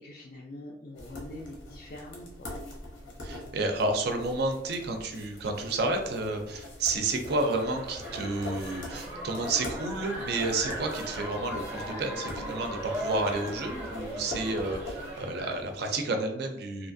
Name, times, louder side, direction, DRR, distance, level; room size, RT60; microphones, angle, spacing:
voice 1, 0.0-2.5, left 1 dB, 50° left, -2 dB, 0.3 m, -44 dB
sound 1, 0.9-15.8, left 1 dB, 90° left, 0.8 m, -43 dB
voice 2, 3.2-16.9, right 2 dB, 55° right, 5 dB, 0.4 m, -31 dB
sound 2, 7.3-15.6, equal, 10° right, 0.6 m, -38 dB
2.8 x 2.4 x 2.5 m, 0.83 s
head